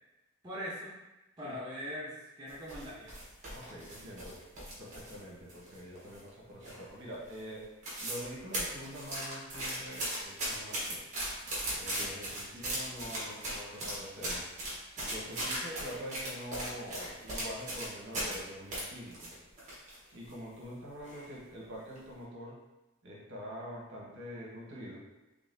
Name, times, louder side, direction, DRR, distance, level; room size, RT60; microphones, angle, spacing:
voice 1, 0.4-0.9 1.4-3.2, equal, 20° right, -8 dB, 0.6 m, -41 dB
sound 1, 2.5-5.2 5.5-6.3 6.6-7.0 7.3-7.4 7.6-8.3 8.5-18.4 18.7-20.0 20.3-20.4 21.0-21.4 21.8-22.0, right 1 dB, 35° right, 1.2 m, -38 dB
voice 2, 3.5-4.4 4.8-7.7 8.0-11.1 11.7-14.4 15.0-19.3 20.1-22.6 23.0-25.0, equal, 60° right, -4 dB, 1.1 m, -45 dB
3.8 x 3.6 x 2.6 m, 1.0 s
head